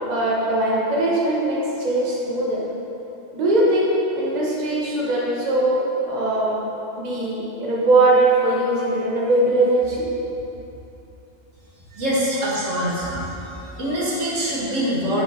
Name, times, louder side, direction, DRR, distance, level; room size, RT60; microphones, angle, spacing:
voice 1, 0.1-2.6 3.3-6.5 7.0-10.1 12.6-13.2, right 2 dB, 35° right, -5 dB, 1.2 m, -21 dB
voice 2, 12.0-13.1 13.7-15.2, equal, 80° right, -6 dB, 1.9 m, -24 dB
7.9 x 7.6 x 2.8 m, 2.9 s
omnidirectional pair, 1.3 m